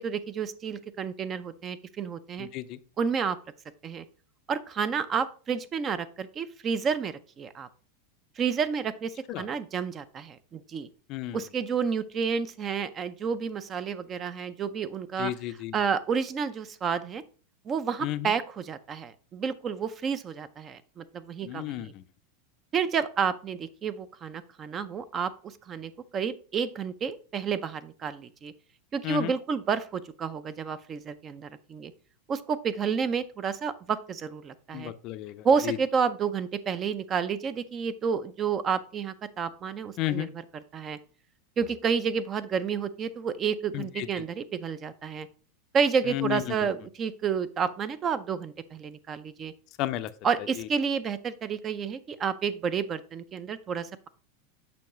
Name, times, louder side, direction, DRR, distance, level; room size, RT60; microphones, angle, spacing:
voice 1, 0.0-2.5 3.0-3.4 3.8-4.0 4.5-7.7 8.4-10.9 11.3-17.2 17.7-21.9 22.7-25.3 25.7-28.5 28.9-31.9 32.3-34.9 35.4-41.0 41.6-45.3 45.7-49.5 50.2-54.1, right 6 dB, 30° right, 14 dB, 0.4 m, -30 dB
voice 2, 2.4-2.8 9.3-9.4 11.1-11.4 15.2-15.7 18.0-18.3 21.4-21.9 29.0-29.3 34.7-35.3 35.7-35.8 40.0-40.3 43.7-44.1 46.1-46.4 49.8-50.1, left 15 dB, 45° left, 13 dB, 0.4 m, -32 dB
7.0 x 5.2 x 3.0 m, 0.39 s
supercardioid pair, 130°, 0 cm